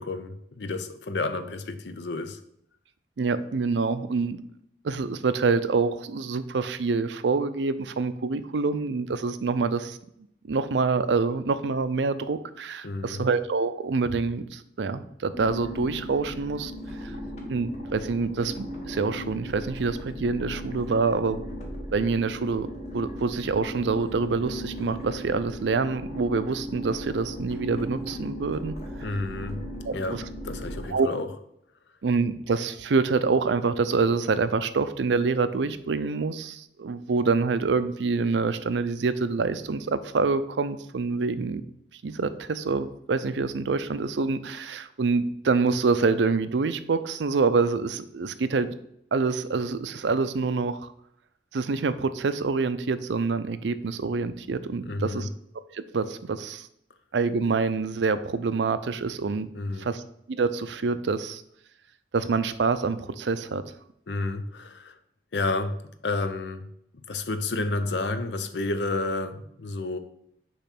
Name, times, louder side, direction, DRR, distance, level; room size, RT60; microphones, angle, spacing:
voice 1, 0.0-2.4 12.8-13.2 29.0-29.6 29.9-30.2 30.4-31.3 54.9-55.3 59.5-59.9 64.1-65.0 65.3-65.8 66.0-66.7 66.9-70.0, left 2 dB, 80° left, 10 dB, 0.6 m, -30 dB
voice 2, 3.2-4.4 4.8-10.0 10.5-16.7 17.0-17.1 17.5-21.4 21.9-28.8 29.8-30.2 30.9-31.1 32.0-41.6 42.0-48.8 49.1-50.9 51.5-55.3 55.7-56.7 57.1-59.5 59.8-60.0 60.3-61.4 62.1-63.6, right 4 dB, 90° right, 13 dB, 0.5 m, -26 dB
sound 1, 15.3-30.9, equal, 40° left, 1.4 m, -37 dB
6.8 x 3.1 x 5.9 m, 0.73 s
head